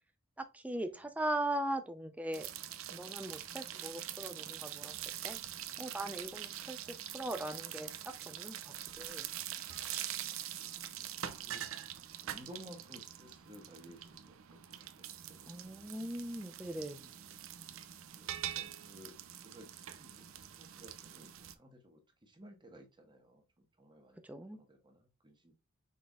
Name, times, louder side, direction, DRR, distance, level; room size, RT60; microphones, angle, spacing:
voice 1, 0.4-2.5 2.9-5.0 5.2-5.4 5.8-9.3 15.5-17.1 24.2-24.6, right 1 dB, 5° right, 0.5 m, -40 dB
sound 1, 2.3-21.5, right 11 dB, 70° right, 0.5 m, -44 dB
voice 2, 10.3-11.6 12.2-15.5 18.1-19.1 19.4-24.2 24.5-25.5, equal, 20° right, 1.2 m, -57 dB
5.5 x 4.0 x 2.3 m
head